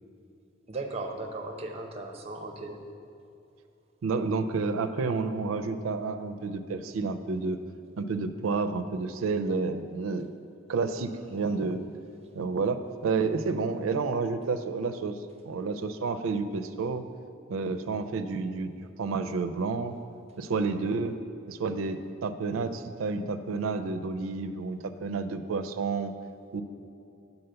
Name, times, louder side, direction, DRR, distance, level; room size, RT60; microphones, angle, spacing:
voice 1, 0.7-2.8, right 2 dB, 30° right, 3 dB, 0.6 m, -37 dB
voice 2, 4.0-7.6 8.0-10.3 10.7-11.8 12.3-15.2 15.4-17.0 17.5-18.7 19.0-19.9 20.4-21.2 21.5-26.1 26.5-26.6, right 4 dB, 85° right, 10 dB, 0.4 m, -30 dB
7.9 x 4.1 x 6.7 m, 2.7 s
head